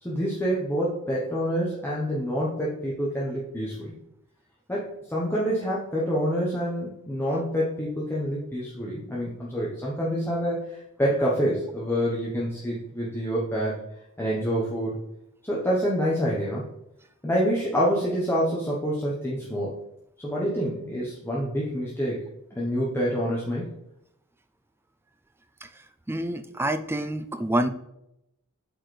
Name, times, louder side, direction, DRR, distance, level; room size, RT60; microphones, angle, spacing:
voice 1, 0.0-3.9 4.7-13.8 14.2-15.0 15.4-16.6 17.2-19.7 20.2-22.2 22.5-23.7, equal, 10° left, -5 dB, 0.9 m, -27 dB
voice 2, 26.1-27.7, right 1 dB, 10° right, 10 dB, 0.3 m, -27 dB
7.8 x 4.5 x 3.2 m, 0.82 s
head